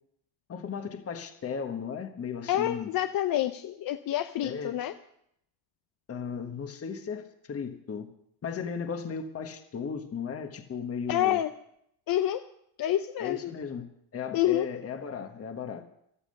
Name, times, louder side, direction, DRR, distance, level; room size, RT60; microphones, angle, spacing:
voice 1, 0.5-2.9 4.4-4.8 6.1-8.1 8.4-11.4 13.2-15.8, left 6 dB, 30° left, 7 dB, 1.4 m, -36 dB
voice 2, 2.5-4.9 11.1-11.5 12.1-12.4 12.8-13.5 14.3-14.7, left 12 dB, 50° left, 10 dB, 0.7 m, -27 dB
14.5 x 13.0 x 6.5 m, 0.73 s
cardioid pair, 135°, 46 cm